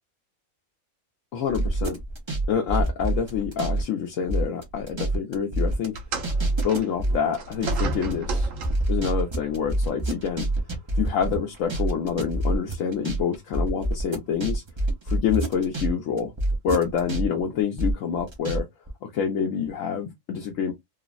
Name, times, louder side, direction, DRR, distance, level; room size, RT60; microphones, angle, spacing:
voice 1, 1.3-2.0 2.5-5.9 6.6-8.5 8.9-10.4 11.0-14.6 15.0-16.3 16.6-18.7 19.0-20.7, left 7 dB, 80° left, 1.1 m, -27 dB
sound 1, 1.5-3.8 4.1-15.9 16.2-18.6 18.9-19.0, right 1 dB, 30° right, 0.6 m, -26 dB
sound 2, 5.9-9.0 10.0-10.2 11.0-11.1, right 3 dB, 80° right, 1.2 m, -34 dB
3.3 x 2.0 x 2.3 m
omnidirectional pair, 1.3 m